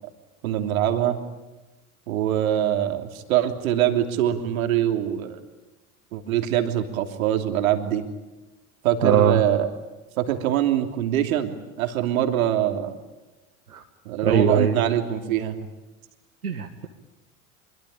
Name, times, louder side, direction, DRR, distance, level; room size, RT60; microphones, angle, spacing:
voice 1, 0.4-1.2 2.1-5.4 6.1-8.0 8.8-9.7 10.2-12.9 14.0-15.6, right 11 dB, 70° right, 5 dB, 3.2 m, -23 dB
voice 2, 9.0-9.4 13.7-13.8 14.2-14.8 16.4-16.9, right 7 dB, 85° right, 2 dB, 2.0 m, -20 dB
25.5 x 24.0 x 9.0 m, 1.1 s
figure-of-eight pair, 75°, 43 cm